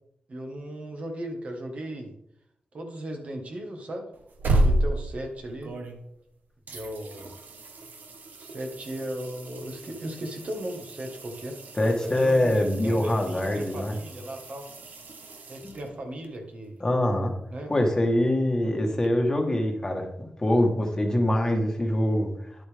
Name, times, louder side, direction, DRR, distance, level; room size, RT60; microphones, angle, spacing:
voice 1, 0.3-2.1 2.7-4.1 4.5-5.7 6.7-7.4 8.4-11.6 12.0-14.7 15.5-16.8 17.5-17.7 18.7-19.0, right 1 dB, 45° right, 3 dB, 1.7 m, -37 dB
sound 1, 4.1-6.3 6.7-16.3 19.0-19.1, right 1 dB, 70° right, 1.4 m, -32 dB
voice 2, 11.8-13.9 15.6-15.7 16.8-17.3 17.7-22.3, left 1 dB, 20° left, 2 dB, 1.4 m, -24 dB
10.5 x 8.0 x 3.6 m, 0.73 s
wide cardioid pair, 140°, 3 cm